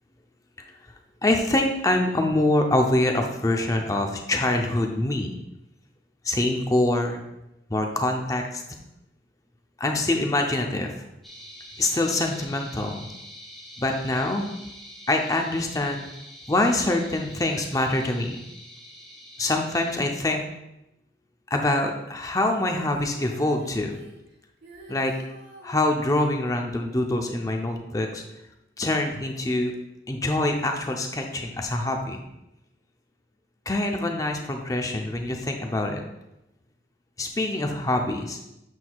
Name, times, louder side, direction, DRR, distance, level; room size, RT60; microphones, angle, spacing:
voice 1, 1.2-5.3 6.2-7.2 7.7-8.6 9.8-10.9 11.8-13.1 13.8-14.5 15.1-16.1 16.5-18.4 19.4-20.4 21.5-24.0 24.9-25.1 25.6-28.2 28.8-29.7 30.1-32.2 33.7-36.0 37.2-38.4, left 1 dB, 20° left, 3 dB, 0.5 m, -25 dB
sound 1, 11.2-19.9, left 1 dB, ahead, 0.9 m, -45 dB
Female singing, 22.5-25.8 27.7-27.8, right 3 dB, 75° right, 1.3 m, -48 dB
7.5 x 6.2 x 2.3 m, 0.89 s
head